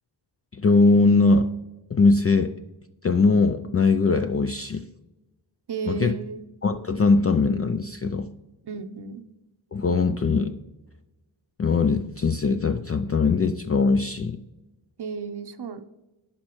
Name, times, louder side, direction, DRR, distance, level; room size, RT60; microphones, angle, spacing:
voice 1, 0.5-1.5 1.9-2.5 3.0-4.9 5.9-6.1 6.6-8.3 9.7-10.5 11.6-14.4, left 4 dB, 30° left, 8 dB, 0.4 m, -21 dB
voice 2, 5.7-6.4 8.6-9.2 15.0-15.8, right 5 dB, 55° right, 10 dB, 0.7 m, -33 dB
11.0 x 4.3 x 3.0 m, 1.0 s
cardioid pair, 40°, 48 cm